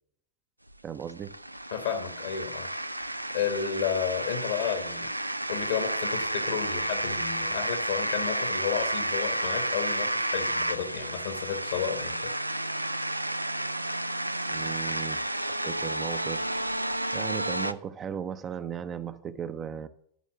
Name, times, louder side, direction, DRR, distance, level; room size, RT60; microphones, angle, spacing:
sound 1, 0.7-17.7, right 1 dB, 85° right, 0.3 m, -31 dB
voice 1, 0.8-1.4 14.5-16.5 17.1-19.9, right 8 dB, 25° right, 0.5 m, -36 dB
voice 2, 1.7-3.0 3.3-5.1 5.5-12.4, left 8 dB, 60° left, 1.4 m, -32 dB
11.0 x 4.5 x 7.4 m
figure-of-eight pair, 90°, 0 cm